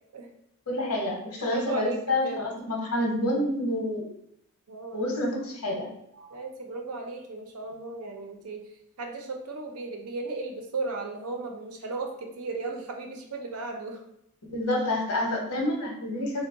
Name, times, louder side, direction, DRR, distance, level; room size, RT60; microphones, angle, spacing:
voice 1, 0.7-4.1 4.9-5.9 14.5-16.5, left 1 dB, 85° left, 0 dB, 0.9 m, -28 dB
voice 2, 1.4-2.4 4.7-5.1 6.1-8.7 9.0-14.0, right 3 dB, 90° right, 3 dB, 0.6 m, -36 dB
3.8 x 2.2 x 3.4 m, 0.75 s
head